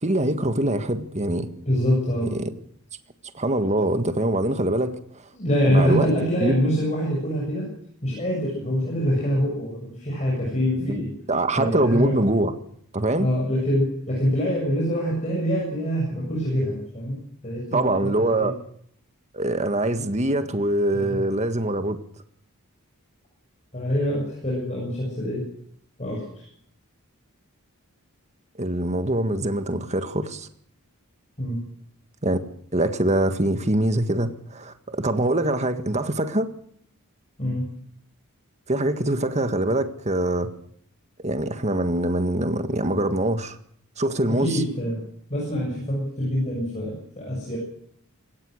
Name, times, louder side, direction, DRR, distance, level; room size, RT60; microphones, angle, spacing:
voice 1, 0.0-1.5 2.3-2.5 3.3-5.2 5.6-6.1 6.4-6.5 10.8-12.5 12.9-13.3 17.7-18.6 19.3-22.0 28.6-30.5 32.2-32.4 32.7-36.5 38.7-40.5 41.2-43.6 44.0-44.6, right 1 dB, 30° right, 9 dB, 1.7 m, -24 dB
voice 2, 1.7-2.3 5.3-7.7 8.0-11.1 11.6-12.2 13.2-18.5 20.9-21.2 23.7-25.5 26.0-26.5 31.4-31.6 37.4-37.7 44.3-45.0 45.3-47.6, equal, 30° left, -2 dB, 7.2 m, -25 dB
23.0 x 18.0 x 6.6 m, 0.65 s
head